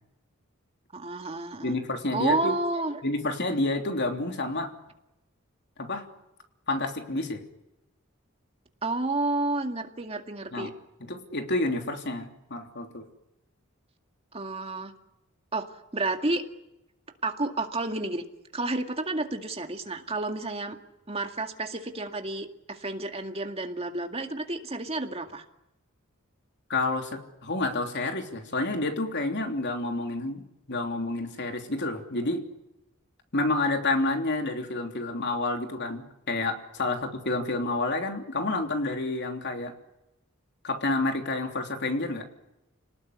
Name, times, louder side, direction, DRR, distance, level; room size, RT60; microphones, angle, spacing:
voice 1, 0.9-1.7 2.1-3.0 8.8-10.7 14.3-14.9 15.5-16.4 17.2-18.3 18.5-20.8 21.1-25.4 36.9-37.0, right 2 dB, 30° right, 5 dB, 2.1 m, -30 dB
voice 2, 1.6-2.6 3.0-4.7 5.8-6.0 6.7-7.4 10.5-10.7 11.0-13.1 26.7-30.4 30.7-32.4 33.3-39.7 40.6-42.2, left 2 dB, 55° left, 4 dB, 3.3 m, -29 dB
29.0 x 19.5 x 9.8 m, 0.90 s
head